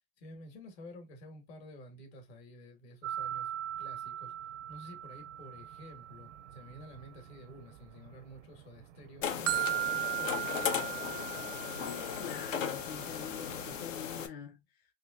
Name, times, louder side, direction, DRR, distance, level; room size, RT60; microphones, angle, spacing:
voice 1, 0.2-3.5 3.8-4.3 4.7-11.9, equal, 55° left, 1.7 m, -51 dB
sound 1, 3.0-8.2 8.4-13.8, right 12 dB, 75° right, 0.5 m, -38 dB
sound 2, 9.2-14.3, left 8 dB, 85° left, 0.9 m, -36 dB
voice 2, 12.2-14.9, left 8 dB, 25° left, 0.5 m, -45 dB
3.8 x 2.7 x 2.4 m
hypercardioid pair, 130°, 37 cm